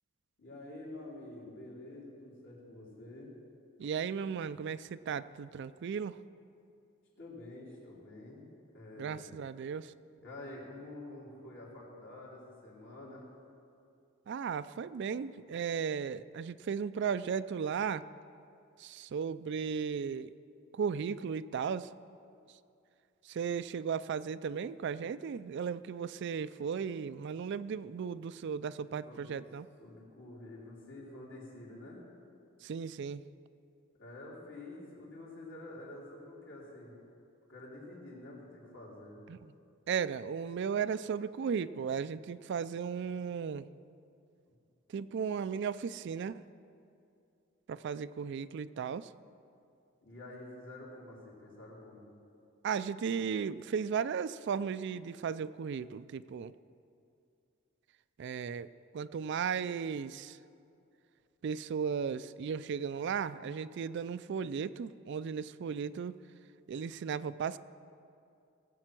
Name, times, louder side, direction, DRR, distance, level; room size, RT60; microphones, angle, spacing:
voice 1, 0.4-3.4 7.2-8.5 8.7-9.3 10.2-13.3 29.0-29.4 29.8-32.0 34.0-36.9 37.5-39.2 44.5-44.6 50.0-52.1, left 2 dB, 60° left, -5 dB, 3.7 m, -48 dB
voice 2, 3.8-6.2 9.0-9.9 14.3-18.0 18.8-20.3 20.7-21.9 23.3-29.7 32.6-33.2 39.3-39.4 39.9-43.7 44.9-46.4 47.7-49.1 52.6-56.5 58.2-58.7 58.9-60.4 61.4-66.1 66.7-67.6, right 6 dB, 55° right, 15 dB, 0.3 m, -35 dB
18.5 x 7.8 x 6.0 m, 2.5 s
head